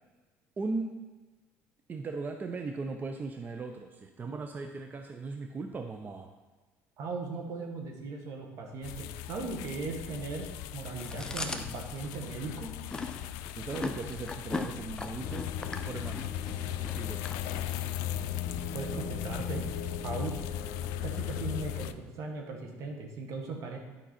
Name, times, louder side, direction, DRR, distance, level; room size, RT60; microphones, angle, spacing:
voice 1, 0.6-0.9 1.9-6.3 13.6-15.5 15.9-16.2 16.9-17.2, right 3 dB, 30° right, 5 dB, 0.6 m, -37 dB
voice 2, 7.0-10.5 10.7-12.7 18.7-19.7 20.0-20.4 21.0-23.8, right 3 dB, 65° right, 2 dB, 1.6 m, -38 dB
sound 1, 8.8-21.9, left 13 dB, 85° left, 0.4 m, -41 dB
Chewing mastication, 11.0-18.0, left 3 dB, 15° left, 0.7 m, -39 dB
sound 2, 15.2-21.9, left 9 dB, 65° left, 1.1 m, -36 dB
10.0 x 5.3 x 4.3 m, 1.3 s
supercardioid pair, 95°, 6 cm